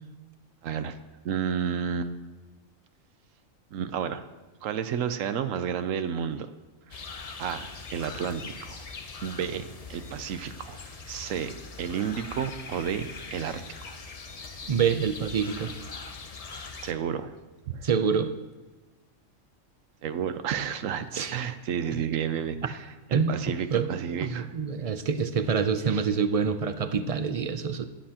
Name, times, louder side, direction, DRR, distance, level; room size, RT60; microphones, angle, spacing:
voice 1, 0.6-1.0 1.2-2.1 3.7-4.2 4.6-6.5 6.9-7.0 7.4-8.8 9.2-14.0 16.8-17.3 17.7-17.9 20.0-22.8 23.1-24.5 25.9-26.0, right 8 dB, 85° right, 10 dB, 1.0 m, -31 dB
sound 1, 6.9-16.9, left 4 dB, 40° left, 0.6 m, -42 dB
voice 2, 14.7-15.7 17.8-18.3 21.1-21.4 23.1-23.4 23.7-27.8, right 6 dB, 60° right, 9 dB, 0.3 m, -26 dB
19.0 x 7.6 x 2.9 m, 1.2 s
omnidirectional pair, 1.3 m